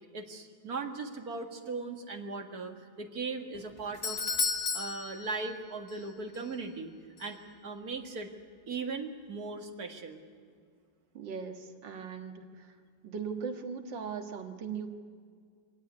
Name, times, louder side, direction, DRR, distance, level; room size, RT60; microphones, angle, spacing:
voice 1, 0.1-4.3 4.7-6.9 7.2-8.3 8.7-10.2, right 3 dB, 50° right, 4 dB, 2.3 m, -38 dB
Doorbell, 3.5-6.1 6.3-6.4 7.2-7.3, left 4 dB, 35° left, 1.6 m, -34 dB
voice 2, 11.1-12.8 13.0-14.9, right 6 dB, 70° right, 5 dB, 2.3 m, -39 dB
23.5 x 17.5 x 9.6 m, 2.1 s
omnidirectional pair, 2.1 m